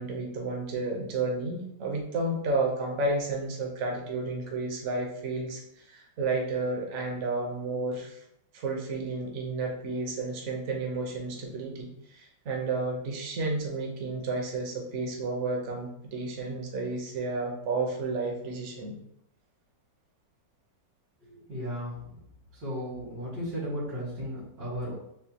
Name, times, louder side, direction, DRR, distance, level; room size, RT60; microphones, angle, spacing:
voice 1, 0.0-8.2 8.5-19.0, right 3 dB, 50° right, 1 dB, 1.0 m, -32 dB
voice 2, 21.2-22.0 22.5-24.9, equal, 75° right, -9 dB, 2.6 m, -35 dB
6.8 x 2.3 x 2.8 m, 0.75 s
omnidirectional pair, 1.9 m